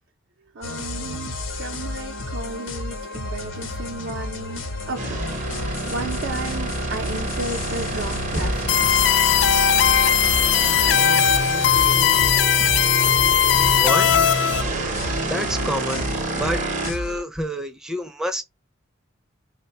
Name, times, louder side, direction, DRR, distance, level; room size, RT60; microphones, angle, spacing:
voice 1, 0.5-8.9 11.8-12.4, right 2 dB, 75° right, 0.6 m, -34 dB
sound 1, 0.6-17.2, left 2 dB, 85° left, 0.8 m, -32 dB
sound 2, 5.0-16.9, right 2 dB, 40° right, 0.7 m, -28 dB
sound 3, 8.7-14.6, left 10 dB, 60° left, 0.4 m, -18 dB
voice 2, 13.7-14.2 15.3-18.4, equal, 5° right, 0.4 m, -28 dB
3.1 x 2.2 x 4.1 m
head